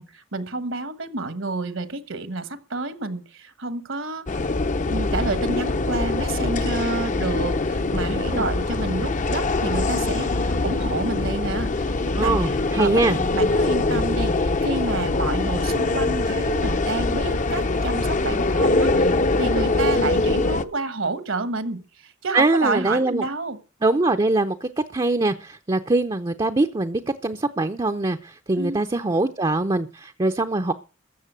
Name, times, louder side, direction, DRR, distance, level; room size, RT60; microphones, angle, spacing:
voice 1, 0.0-4.5 4.9-23.6 28.6-28.8, right 3 dB, 70° right, 13 dB, 1.3 m, -29 dB
sound 1, 4.3-20.6, left 2 dB, 40° left, 0.7 m, -23 dB
voice 2, 12.1-13.2 22.3-23.3 23.8-30.7, right 2 dB, 20° right, 8 dB, 0.6 m, -23 dB
14.0 x 6.9 x 8.0 m, 0.36 s
head